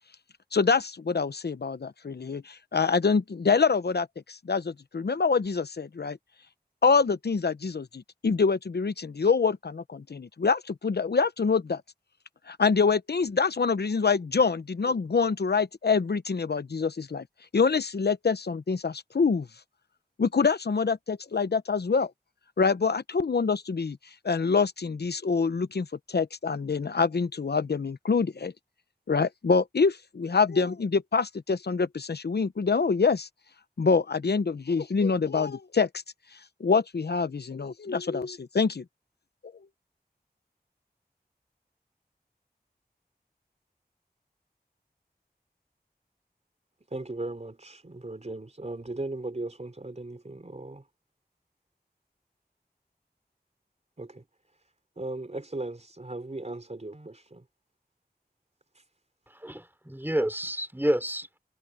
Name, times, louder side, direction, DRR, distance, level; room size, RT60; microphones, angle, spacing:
voice 1, 0.5-6.2 6.8-11.8 12.5-17.3 17.5-19.5 20.2-22.1 22.6-24.0 24.2-28.5 29.1-33.3 33.8-35.9 36.6-38.8, left 5 dB, 80° left, 0.9 m, -25 dB
voice 2, 46.9-50.9 54.0-54.3 54.6-54.7 55.0-57.5 58.7-58.9, right 2 dB, 45° right, 4.4 m, -37 dB
voice 3, 59.3-61.4, right 1 dB, 10° right, 4.2 m, -29 dB
wide cardioid pair, 55°, 17 cm